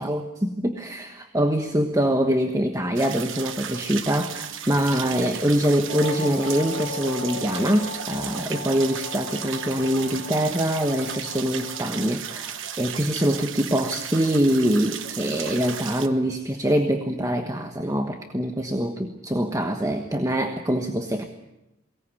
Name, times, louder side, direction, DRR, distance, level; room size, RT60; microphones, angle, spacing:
voice 1, 0.0-21.2, equal, 15° right, 5 dB, 1.3 m, -24 dB
sound 1, 3.0-16.1, right 9 dB, 65° right, 1.2 m, -35 dB
sound 2, 5.9-12.1, left 4 dB, 25° left, 5.3 m, -37 dB
22.5 x 18.5 x 9.7 m, 0.95 s
head